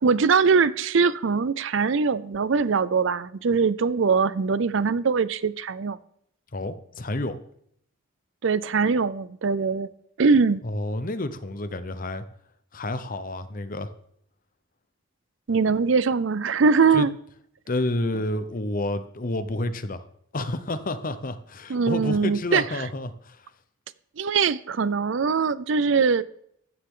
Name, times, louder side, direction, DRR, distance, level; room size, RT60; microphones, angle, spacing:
voice 1, 0.0-6.0 8.4-9.9 10.2-10.6 15.5-17.1 21.7-22.6 24.2-26.2, right 5 dB, 60° right, 17 dB, 0.5 m, -22 dB
voice 2, 6.5-7.4 10.6-12.2 12.7-13.9 16.9-17.1 17.7-20.0 20.3-23.4, left 2 dB, 40° left, 11 dB, 0.9 m, -29 dB
15.5 x 10.0 x 3.8 m, 0.69 s
head